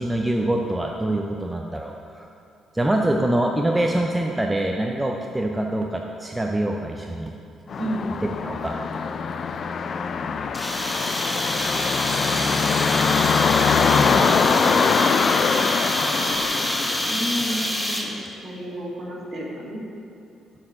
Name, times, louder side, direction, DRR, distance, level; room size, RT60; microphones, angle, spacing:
voice 1, 0.0-2.3 2.7-7.3 8.4-8.8, right 1 dB, 10° right, 1 dB, 0.5 m, -24 dB
sound 1, 7.7-17.9, left 5 dB, 50° left, 0.3 m, -23 dB
sound 2, 10.5-18.3, equal, 5° left, 1.0 m, -27 dB
voice 2, 17.1-18.1 18.4-19.8, equal, 50° right, -4 dB, 1.8 m, -31 dB
7.3 x 4.3 x 6.4 m, 2.6 s
cardioid pair, 90°, 0 cm